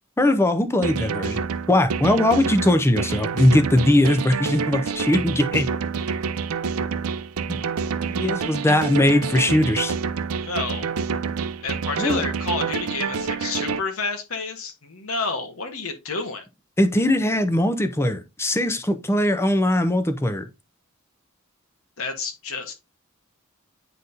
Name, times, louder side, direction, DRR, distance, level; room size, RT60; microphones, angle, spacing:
voice 1, 0.2-1.4 1.7-5.7 7.5-7.6 8.1-9.9 12.0-12.2 16.8-20.5, left 1 dB, 10° left, 0.6 m, -20 dB
sound 1, 0.8-13.8, right 5 dB, 80° right, 0.5 m, -27 dB
voice 2, 10.4-10.9 11.6-16.4 22.0-22.7, left 4 dB, 70° left, 1.2 m, -29 dB
9.2 x 4.1 x 2.7 m
head